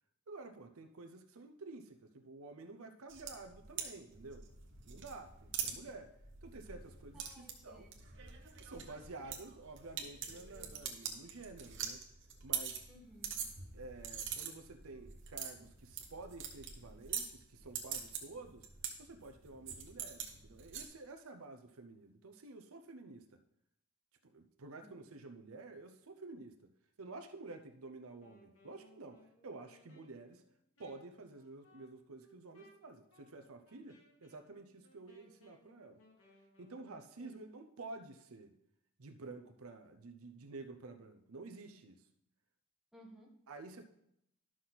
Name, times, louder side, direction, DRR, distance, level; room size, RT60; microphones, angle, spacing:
voice 1, 0.3-4.5 4.9-6.1 6.4-7.9 8.6-12.0 12.4-12.8 13.7-18.7 19.0-23.4 24.2-26.7 27.0-30.4 30.8-36.0 36.6-38.6 39.0-42.0 43.5-43.8, right 3 dB, 75° right, 7 dB, 0.7 m, -51 dB
sound 1, 3.1-20.8, right 8 dB, 60° right, 1.2 m, -45 dB
voice 2, 7.1-8.0 12.9-13.4 24.8-25.1 37.2-37.4 42.9-43.4, equal, ahead, -2 dB, 1.4 m, -59 dB
Wind instrument woodwind instrument, 28.1-36.8, left 2 dB, 75° left, 2.4 m, -67 dB
11.5 x 6.1 x 4.1 m, 0.78 s
head